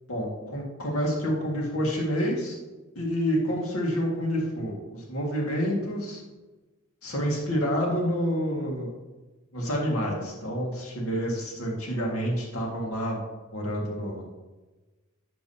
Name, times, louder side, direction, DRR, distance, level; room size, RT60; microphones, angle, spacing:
voice 1, 0.1-2.6 3.0-6.2 7.0-8.9 9.5-13.2 13.5-14.2, equal, 70° left, -2 dB, 1.8 m, -28 dB
11.0 x 7.5 x 2.8 m, 1.2 s
head